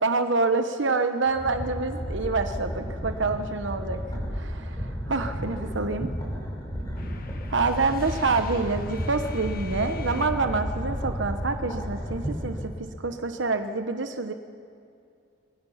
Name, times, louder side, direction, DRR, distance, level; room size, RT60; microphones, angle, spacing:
voice 1, 0.0-4.0 4.3-4.8 5.1-6.1 7.5-12.7 13.0-14.3, right 3 dB, 70° right, 7 dB, 1.0 m, -27 dB
sound 1, 1.3-12.8, equal, 20° left, 5.0 m, -33 dB
sound 2, 7.0-10.8, left 3 dB, 45° left, 1.5 m, -42 dB
25.5 x 21.0 x 5.8 m, 2.4 s
head